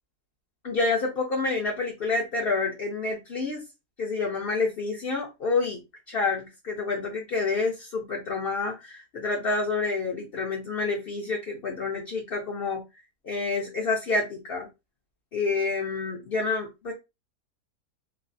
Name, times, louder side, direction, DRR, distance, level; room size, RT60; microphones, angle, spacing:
voice 1, 0.6-3.6 4.0-5.8 6.1-12.8 13.2-14.7 15.3-16.9, left 3 dB, 60° left, -1 dB, 0.6 m, -28 dB
3.2 x 2.3 x 2.6 m, 0.24 s
omnidirectional pair, 1.7 m